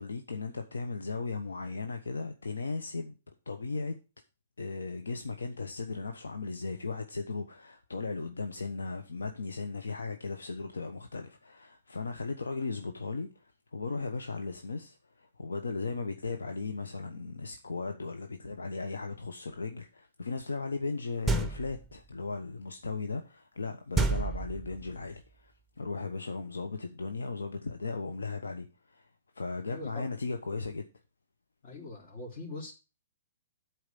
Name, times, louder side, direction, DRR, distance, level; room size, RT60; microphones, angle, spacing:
voice 1, 0.0-3.1 3.5-3.9 4.6-29.1 29.3-30.9, left 4 dB, 80° left, 1.0 m, -37 dB
sound 1, 21.3-21.9 23.9-25.0, right 3 dB, 5° right, 0.9 m, -29 dB
voice 2, 29.7-30.1 31.6-32.7, left 2 dB, 50° left, 3.4 m, -42 dB
8.1 x 4.7 x 7.0 m
figure-of-eight pair, 120°, 0 cm